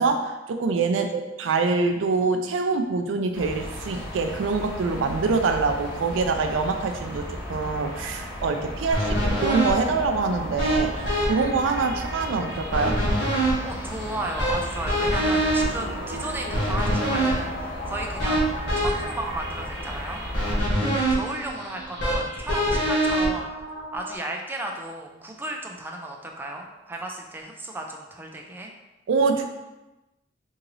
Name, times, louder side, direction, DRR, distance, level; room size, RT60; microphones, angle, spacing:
voice 1, 0.0-13.0 29.1-29.5, right 4 dB, 80° right, 6 dB, 0.4 m, -25 dB
sound 1, 3.3-20.6, equal, 80° left, 1.4 m, -35 dB
voice 2, 8.7-9.0 13.6-23.5 23.9-28.7, right 1 dB, 10° right, 1 dB, 0.4 m, -34 dB
sound 2, 8.9-24.2, right 1 dB, 65° left, 1.1 m, -26 dB
sound 3, 14.2-19.4 20.1-20.5 21.8-21.9 22.6-22.9 25.0-25.6 26.3-26.4 26.6-26.7, equal, 40° right, 1.0 m, -42 dB
2.8 x 2.8 x 3.9 m, 1.0 s
head